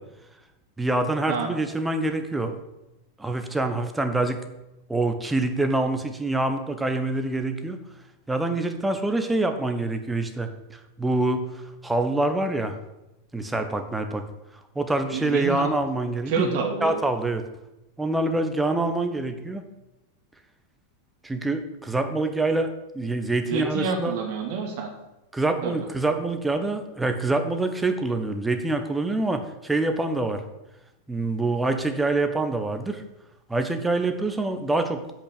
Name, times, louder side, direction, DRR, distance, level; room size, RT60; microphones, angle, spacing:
voice 1, 0.8-2.6 3.2-4.4 4.9-7.8 8.3-12.8 13.3-14.2 14.7-16.5 16.8-17.4 18.0-19.6 21.2-24.2 25.3-30.4 31.1-33.0 33.5-35.0, right 2 dB, 10° right, 7 dB, 1.2 m, -26 dB
voice 2, 15.1-15.7 16.3-16.9 23.4-24.9 25.6-25.8, right 5 dB, 50° right, 2 dB, 2.4 m, -28 dB
8.4 x 6.1 x 8.1 m, 0.95 s
figure-of-eight pair, 90°, 0 cm